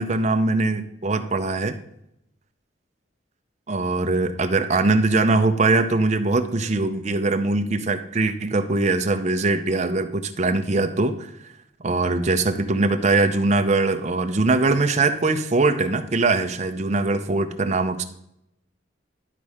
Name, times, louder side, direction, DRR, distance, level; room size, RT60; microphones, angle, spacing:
voice 1, 0.0-1.8 3.7-11.3 11.8-18.0, right 3 dB, 40° right, 7 dB, 0.6 m, -22 dB
11.5 x 4.1 x 4.9 m, 0.78 s
head